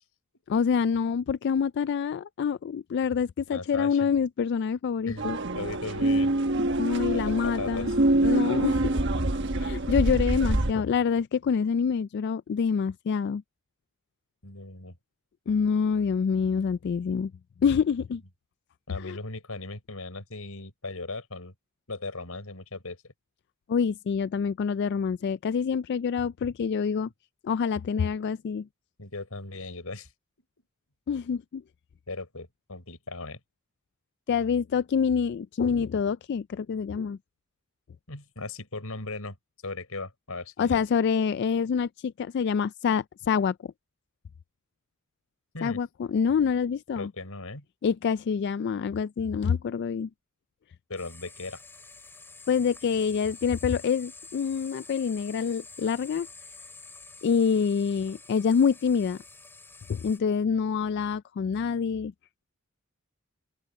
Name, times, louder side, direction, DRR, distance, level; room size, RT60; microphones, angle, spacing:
voice 1, 0.5-5.4 6.8-7.9 8.2-9.0 9.6-13.4 15.5-17.3 17.6-18.2 19.0-19.2 23.7-27.1 27.4-28.7 31.1-31.6 34.3-37.2 40.6-43.6 45.6-47.1 47.8-50.1 52.5-56.3 57.2-59.2 59.9-62.1, left 6 dB, 50° left, 0.3 m, -26 dB
voice 2, 3.5-4.1 5.0-6.3 7.1-8.0 14.4-15.0 18.9-21.5 21.9-23.1 29.0-30.1 32.1-33.4 38.1-39.4 39.6-40.8 45.5-45.8 46.9-47.7 50.9-51.6, left 3 dB, 80° left, 5.5 m, -38 dB
sound 1, 5.2-10.7, right 1 dB, 55° right, 1.3 m, -25 dB
sound 2, 51.0-60.2, left 3 dB, 10° left, 2.6 m, -48 dB
open air
head